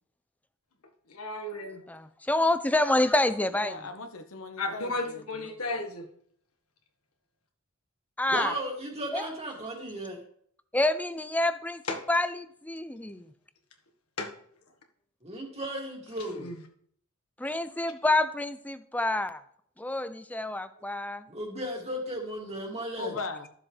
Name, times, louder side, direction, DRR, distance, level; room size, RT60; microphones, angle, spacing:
voice 1, 1.1-1.8 4.6-6.1 11.9-12.0 14.2-14.3 16.2-16.6, left 2 dB, 85° left, 3 dB, 1.7 m, -34 dB
voice 2, 1.9-3.8 8.2-8.5 9.1-9.3 10.7-11.8 12.1-13.2 17.4-19.4 19.8-21.2, left 2 dB, 5° left, 11 dB, 0.5 m, -27 dB
voice 3, 3.5-5.2 23.0-23.5, left 3 dB, 65° left, 6 dB, 1.0 m, -38 dB
voice 4, 8.3-10.2 15.2-16.5 21.3-23.1, right 1 dB, 30° right, 0 dB, 2.6 m, -35 dB
13.0 x 7.2 x 3.3 m, 0.62 s
head